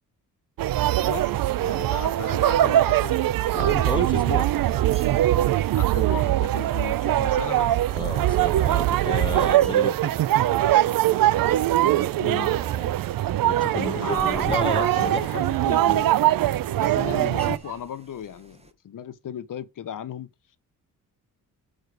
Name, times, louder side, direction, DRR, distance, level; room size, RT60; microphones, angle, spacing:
sound 1, 0.6-17.6, right 13 dB, 65° right, 0.5 m, -22 dB
voice 1, 1.0-3.2 5.7-7.8 12.2-12.6 13.7-16.1 16.8-20.3, left 9 dB, 55° left, 1.0 m, -36 dB
sound 2, 1.7-18.7, right 3 dB, 15° right, 1.3 m, -46 dB
voice 2, 3.5-4.5 7.9-10.2 13.4-15.5, left 3 dB, 15° left, 0.9 m, -32 dB
sound 3, 7.3-17.8, right 8 dB, 85° right, 1.6 m, -47 dB
6.5 x 4.8 x 5.1 m
cardioid pair, 90°, 37 cm